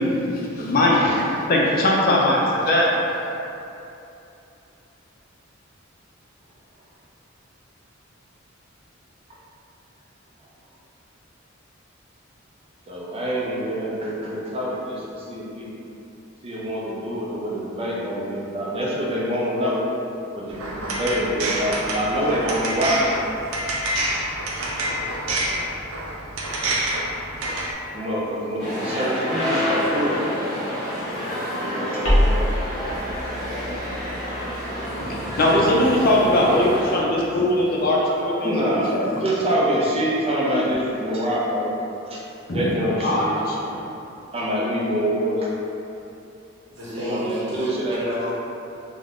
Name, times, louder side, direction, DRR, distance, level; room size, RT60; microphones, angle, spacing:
voice 1, 0.0-2.9 35.0-39.2 42.5-42.7 43.0-43.8, left 1 dB, 45° left, -3 dB, 0.5 m, -21 dB
voice 2, 12.9-15.7 16.4-19.8 20.3-23.1 27.9-30.2 31.6-32.5 38.4-41.7 42.1-42.2 42.5-43.3 44.3-45.5 46.9-48.0, equal, 30° right, -5 dB, 0.5 m, -25 dB
sound 1, 20.5-27.7, right 1 dB, 85° right, 0.4 m, -27 dB
sound 2, 28.6-37.0, equal, ahead, 1.0 m, -28 dB
sound 3, 32.0-36.9, equal, 70° left, 0.8 m, -27 dB
voice 3, 46.7-48.3, equal, 60° right, -8 dB, 0.8 m, -30 dB
2.5 x 2.2 x 3.5 m, 2.8 s
head